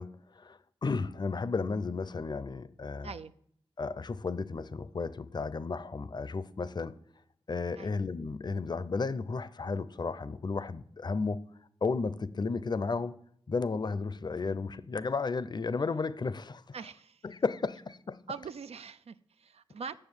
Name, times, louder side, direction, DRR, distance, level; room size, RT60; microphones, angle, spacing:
voice 1, 0.0-3.1 3.8-7.0 7.5-11.4 11.8-13.2 13.5-16.8 17.2-18.2, left 4 dB, 45° left, 0.5 m, -33 dB
voice 2, 16.7-17.2 18.3-20.0, right 5 dB, 90° right, 0.4 m, -43 dB
7.8 x 6.7 x 7.1 m
wide cardioid pair, 70°, 10 cm